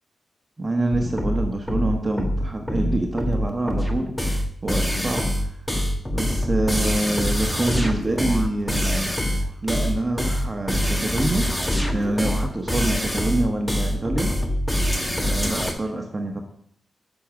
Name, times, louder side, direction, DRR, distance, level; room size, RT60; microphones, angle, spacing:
voice 1, 0.6-4.1 4.6-5.2 6.1-9.1 9.6-11.5 11.9-14.3 15.2-16.4, right 2 dB, 30° right, 2 dB, 1.3 m, -26 dB
sound 1, 0.9-15.7, equal, 10° left, 1.5 m, -24 dB
7.2 x 5.2 x 6.1 m, 0.66 s
supercardioid pair, 45°, 0 cm